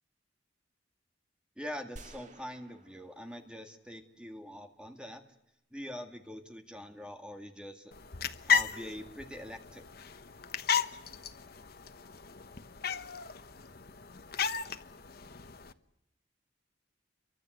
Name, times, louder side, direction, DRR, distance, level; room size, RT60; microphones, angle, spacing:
voice 1, 1.6-5.2 5.7-7.9 8.5-9.8, equal, 5° right, 5 dB, 2.1 m, -44 dB
sound 1, 2.0-4.3, right 2 dB, 40° right, 2.0 m, -54 dB
sound 2, 7.9-15.7, left 6 dB, 55° left, 1.2 m, -34 dB
30.0 x 24.0 x 8.0 m, 0.83 s
head